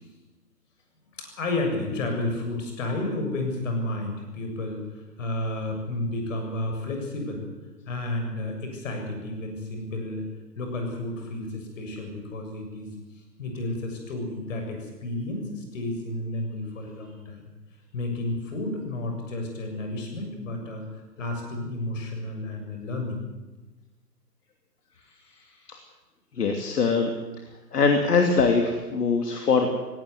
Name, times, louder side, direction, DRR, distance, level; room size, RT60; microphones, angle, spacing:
voice 1, 1.2-4.8 5.2-7.4 7.9-10.3 10.6-12.9 13.4-17.4 17.9-20.9 21.2-23.3, left 2 dB, 50° left, 4 dB, 7.3 m, -31 dB
voice 2, 26.3-27.1 27.7-29.7, left 4 dB, 65° left, 4 dB, 3.0 m, -22 dB
19.0 x 18.0 x 9.7 m, 1.1 s
hypercardioid pair, 150°, 50 cm